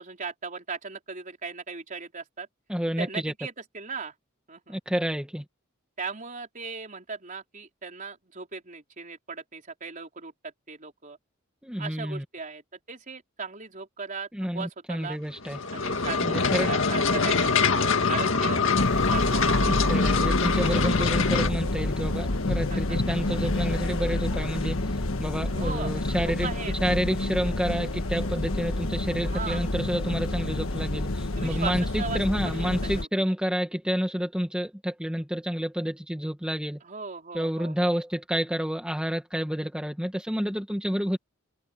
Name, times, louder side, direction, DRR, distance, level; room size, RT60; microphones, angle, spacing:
voice 1, 0.0-2.5 3.0-4.1 4.5-4.8 6.0-11.2 11.8-14.3 14.5-15.2 15.7-18.6 19.1-19.6 22.7-23.0 25.5-26.7 29.2-29.6 31.4-33.1 36.8-37.9, right 4 dB, 40° right, 4.6 m, -38 dB
voice 2, 2.7-3.3 4.7-5.4 11.6-12.2 14.3-15.6 16.2-16.7 19.7-26.5 26.8-36.8 37.3-41.2, equal, 5° right, 1.9 m, -29 dB
sound 1, 15.4-21.5, left 4 dB, 70° left, 2.0 m, -24 dB
sound 2, 18.7-33.0, left 2 dB, 85° left, 1.5 m, -28 dB
head